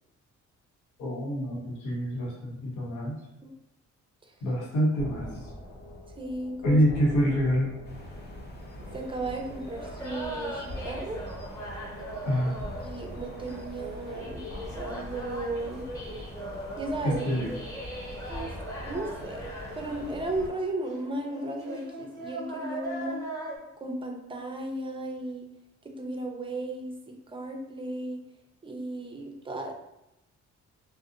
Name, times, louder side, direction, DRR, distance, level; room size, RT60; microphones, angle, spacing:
voice 1, 1.0-3.2 4.4-5.5 6.6-7.8 12.3-12.6 17.0-17.5, equal, 90° left, -4 dB, 0.9 m, -26 dB
sound 1, 5.0-20.2, left 1 dB, 50° left, 0.9 m, -44 dB
voice 2, 6.2-6.8 8.9-11.2 12.8-15.8 16.8-17.3 18.3-18.5 18.8-19.5 19.8-23.2 23.8-25.5 25.8-28.2 28.6-29.7, right 2 dB, 20° right, 2 dB, 0.4 m, -35 dB
sound 2, 7.8-20.5, equal, 35° left, 0.5 m, -46 dB
sound 3, 9.8-23.6, right 1 dB, 10° left, 0.9 m, -40 dB
2.5 x 2.1 x 2.4 m, 0.87 s
cardioid pair, 90°, 30 cm